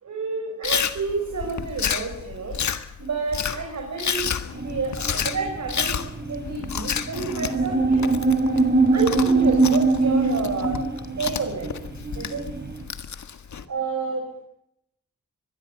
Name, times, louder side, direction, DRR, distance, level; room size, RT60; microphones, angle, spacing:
voice 1, 0.0-2.6 3.0-4.3 4.6-6.0 6.2-8.0 8.5-10.8 11.1-11.7 12.1-12.4 13.7-14.2, right 4 dB, 70° right, 2 dB, 5.0 m, -29 dB
Chewing mastication, 0.6-13.6, left 7 dB, 75° left, 1.6 m, -30 dB
sound 1, 4.5-12.8, right 3 dB, 35° right, 3.5 m, -23 dB
24.0 x 21.0 x 5.2 m, 0.77 s
wide cardioid pair, 125°, 29 cm